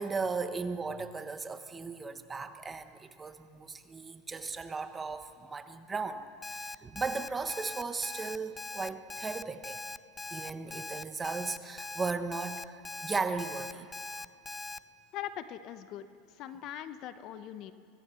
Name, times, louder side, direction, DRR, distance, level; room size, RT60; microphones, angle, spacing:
voice 1, 0.0-9.8 10.3-13.9, right 4 dB, 15° right, 9 dB, 1.1 m, -36 dB
Alarm, 6.4-14.8, left 3 dB, 10° left, 0.5 m, -41 dB
voice 2, 15.1-16.1 16.3-17.7, left 11 dB, 50° left, 12 dB, 1.0 m, -41 dB
25.0 x 17.0 x 7.1 m, 2.3 s
supercardioid pair, 130°, 0 cm